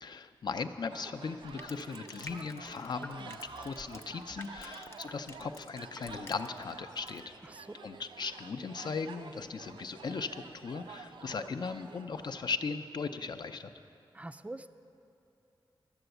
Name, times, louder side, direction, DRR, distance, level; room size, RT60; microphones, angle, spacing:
voice 1, 0.0-7.3 7.8-13.8, left 5 dB, 60° left, 9 dB, 0.5 m, -38 dB
sound 1, 0.9-12.4, right 5 dB, 80° right, 0.5 m, -50 dB
Crushing, 1.4-6.7 7.0-7.2, left 2 dB, 30° left, 0.7 m, -49 dB
voice 2, 7.4-7.8 14.1-14.7, right 2 dB, 15° right, 11 dB, 0.4 m, -44 dB
11.5 x 7.0 x 7.9 m, 2.7 s
wide cardioid pair, 90°, 8 cm